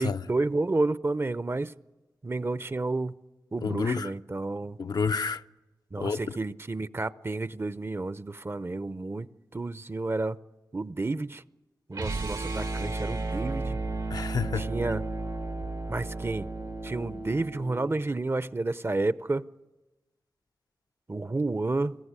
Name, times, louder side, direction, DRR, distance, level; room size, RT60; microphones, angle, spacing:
voice 1, 0.0-1.7 2.2-3.1 3.5-4.8 5.9-10.4 10.7-11.4 11.9-13.8 14.6-15.0 15.9-16.5 16.8-19.5 21.1-22.0, right 2 dB, 35° right, 0.7 m, -30 dB
voice 2, 3.6-4.1 4.8-5.4 6.0-6.2 14.1-14.7, left 5 dB, 70° left, 0.6 m, -29 dB
sound 1, 11.9-18.0, right 2 dB, 85° right, 2.3 m, -33 dB
22.5 x 14.5 x 9.7 m
cardioid pair, 45°, 7 cm